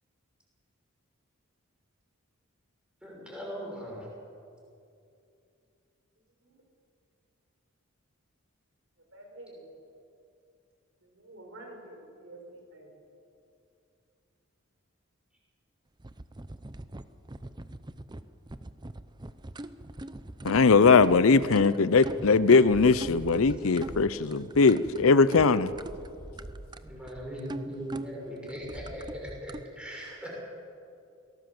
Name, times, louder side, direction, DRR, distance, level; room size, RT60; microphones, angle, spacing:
voice 1, 3.0-4.1 26.8-30.3, equal, 5° right, -3 dB, 6.1 m, -39 dB
voice 2, 9.1-9.6 11.0-12.4 12.7-12.9, right 1 dB, 65° right, 2 dB, 5.2 m, -48 dB
sound 1, 16.0-29.6, right 1 dB, 20° right, 0.7 m, -42 dB
voice 3, 20.4-25.7, left 4 dB, 75° left, 16 dB, 0.6 m, -20 dB
23.5 x 18.0 x 7.8 m, 2.5 s
head